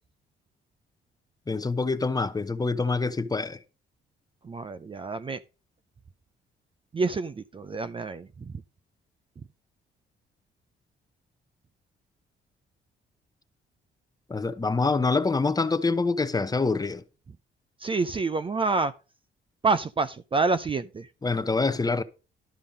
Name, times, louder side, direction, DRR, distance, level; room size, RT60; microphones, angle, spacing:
voice 1, 1.5-3.6 14.3-17.0 21.2-22.0, left 3 dB, 20° left, 0.8 m, -26 dB
voice 2, 4.4-5.4 6.9-8.5 17.8-18.9 19.6-21.1, right 4 dB, 25° right, 0.5 m, -27 dB
12.0 x 5.4 x 5.2 m
cardioid pair, 90°, 20 cm